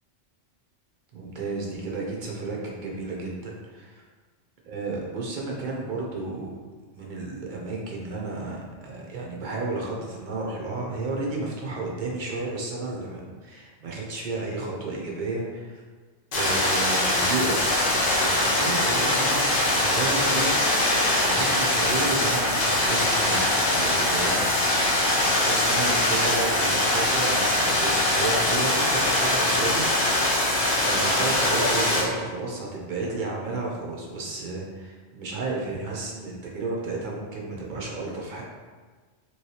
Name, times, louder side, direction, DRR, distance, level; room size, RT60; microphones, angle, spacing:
voice 1, 1.1-4.0 4.7-6.5 6.9-15.8 16.3-20.9 21.2-24.8 25.3-30.3 30.8-38.4, right 3 dB, 55° right, -3 dB, 0.5 m, -32 dB
sound 1, 16.3-32.0, left 1 dB, 90° left, 1.1 m, -22 dB
3.1 x 3.0 x 2.8 m, 1.4 s
omnidirectional pair, 1.3 m